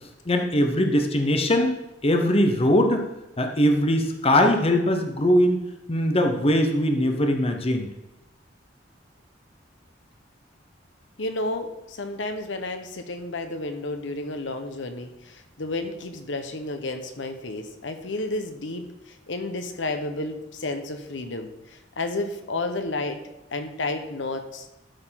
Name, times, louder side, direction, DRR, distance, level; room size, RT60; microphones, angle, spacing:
voice 1, 0.3-1.8 2.0-3.1 3.4-5.6 5.9-7.9, left 1 dB, 30° left, 5 dB, 0.9 m, -21 dB
voice 2, 11.2-23.2 23.5-24.7, left 2 dB, 70° left, 7 dB, 1.1 m, -31 dB
12.5 x 4.6 x 5.8 m, 0.97 s
head